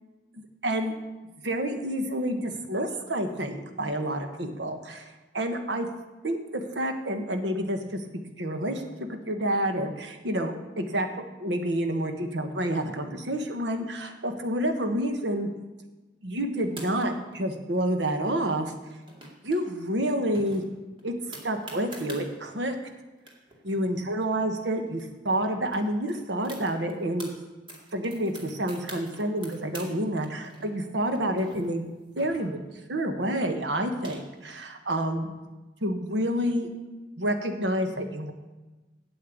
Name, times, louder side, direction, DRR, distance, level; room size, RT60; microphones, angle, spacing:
voice 1, 0.6-1.0 1.4-5.9 6.2-8.0 8.4-11.1 11.4-15.5 16.2-18.7 19.4-20.6 21.0-21.1 21.4-22.7 23.6-27.3 27.9-31.9 32.2-32.6 32.9-35.3 35.8-36.7 37.2-38.3, right 1 dB, 70° right, 6 dB, 1.3 m, -29 dB
sound 1, 16.6-17.4 18.8-19.6 19.9-20.0 20.3-22.2 22.9-23.0 23.2-25.0 25.3-25.4 25.7-27.3 27.7-29.9 30.2-32.8 33.6-34.6, right 1 dB, 30° right, 2.3 m, -45 dB
8.7 x 7.8 x 8.4 m, 1.1 s
head